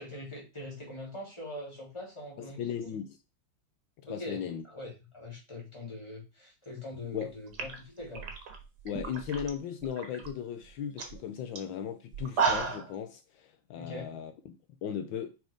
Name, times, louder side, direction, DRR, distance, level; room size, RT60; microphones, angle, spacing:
voice 1, 0.0-2.9 4.1-8.3 13.7-14.1, left 1 dB, 15° left, 2.9 m, -42 dB
voice 2, 2.4-3.2 4.1-4.6 7.1-7.3 8.8-15.3, left 8 dB, 75° left, 1.4 m, -37 dB
sound 1, 7.1-7.2 7.5-9.5 9.8-10.3 10.6-10.7 11.0-11.2 11.6-11.7 12.1-12.9, right 5 dB, 55° right, 2.0 m, -32 dB
5.9 x 5.3 x 5.0 m
omnidirectional pair, 2.1 m